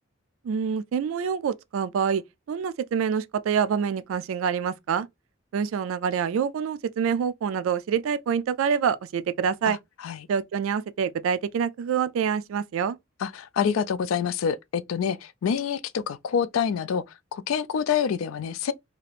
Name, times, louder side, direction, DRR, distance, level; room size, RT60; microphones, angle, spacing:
voice 1, 0.4-2.2 2.5-5.1 5.5-9.8 10.3-13.0, right 7 dB, 80° right, 0.3 m, -26 dB
voice 2, 13.2-17.0 17.3-18.7, left 7 dB, 85° left, 0.3 m, -27 dB
2.8 x 2.4 x 3.3 m
head